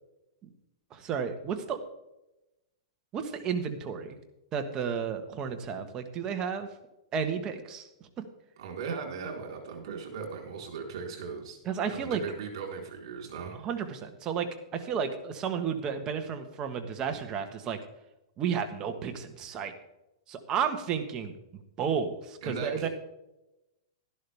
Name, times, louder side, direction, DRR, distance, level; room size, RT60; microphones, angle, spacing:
voice 1, 0.9-1.8 3.1-4.2 4.5-6.7 7.1-7.9 11.6-12.2 13.6-17.8 18.4-19.7 20.3-21.3 21.8-22.9, right 7 dB, 25° right, 6 dB, 1.4 m, -32 dB
voice 2, 8.6-11.6 11.9-13.6 22.4-22.9, right 5 dB, 60° right, 2 dB, 3.9 m, -38 dB
12.5 x 11.5 x 3.5 m, 0.92 s
hypercardioid pair, 150°, 3 cm